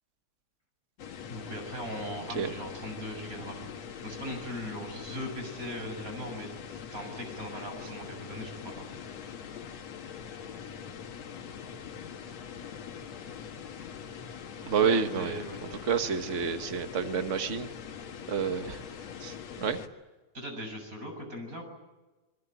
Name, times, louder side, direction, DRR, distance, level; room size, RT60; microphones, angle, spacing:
sound 1, 1.0-19.9, left 7 dB, 60° left, 2.7 m, -43 dB
voice 1, 1.3-6.6 6.9-8.9 14.7-15.6 20.3-21.6, equal, 25° right, 4 dB, 7.6 m, -39 dB
voice 2, 14.7-15.4 15.9-17.7 18.3-18.8 19.2-19.8, right 6 dB, 85° right, 8 dB, 0.6 m, -29 dB
25.5 x 23.5 x 9.1 m, 1.2 s
omnidirectional pair, 3.6 m